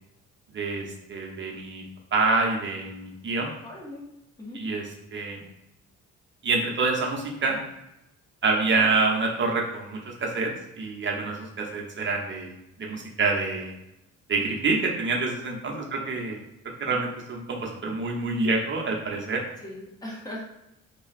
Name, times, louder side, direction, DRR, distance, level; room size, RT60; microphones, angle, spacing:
voice 1, 0.5-1.8 2.1-3.5 4.5-4.8 5.1-5.4 6.4-7.6 8.4-10.5 10.8-13.7 14.3-16.4 16.8-19.4, right 3 dB, 40° right, 0 dB, 0.9 m, -27 dB
voice 2, 3.6-4.0 4.4-4.6 15.7-16.1 16.9-17.0 19.6-20.4, left 1 dB, 15° left, -4 dB, 1.4 m, -40 dB
2.9 x 2.4 x 4.1 m, 0.86 s
cardioid pair, 90°, 30 cm